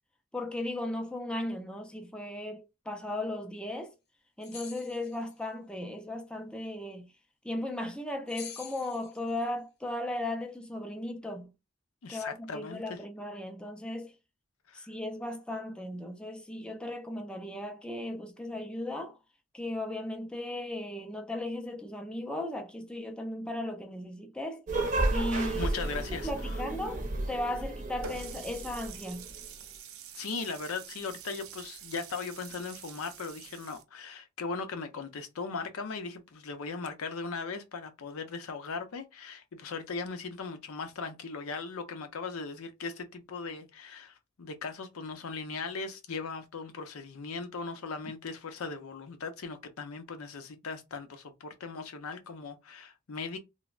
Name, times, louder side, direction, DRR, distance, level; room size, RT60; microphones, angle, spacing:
voice 1, 0.3-3.9 4.4-7.1 7.4-11.5 12.1-14.1 14.7-19.2 19.5-24.7 25.1-25.7 26.1-29.3, left 1 dB, 5° left, 0.3 m, -36 dB
sound 1, 4.4-5.3 8.3-9.4, left 7 dB, 55° left, 0.7 m, -46 dB
voice 2, 12.0-13.0 14.7-14.9 25.5-26.6 30.1-53.4, left 4 dB, 90° left, 0.6 m, -38 dB
sound 2, 24.7-29.3, right 2 dB, 35° right, 0.6 m, -32 dB
Water tap faucet, 28.0-33.8, right 7 dB, 80° right, 0.5 m, -46 dB
3.1 x 2.0 x 2.4 m
head